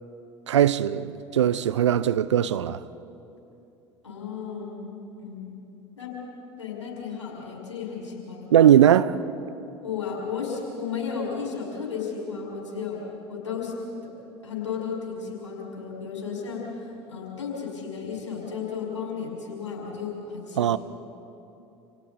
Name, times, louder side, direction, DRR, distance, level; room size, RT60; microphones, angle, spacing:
voice 1, 0.5-2.8 8.5-9.2 20.6-20.8, right 10 dB, 75° right, 0.7 m, -19 dB
voice 2, 4.0-5.6 6.0-6.2 6.6-8.5 9.8-13.0 13.3-13.7 14.4-20.7, left 6 dB, 80° left, 5.8 m, -34 dB
30.0 x 28.5 x 4.3 m
figure-of-eight pair, 75°, 15 cm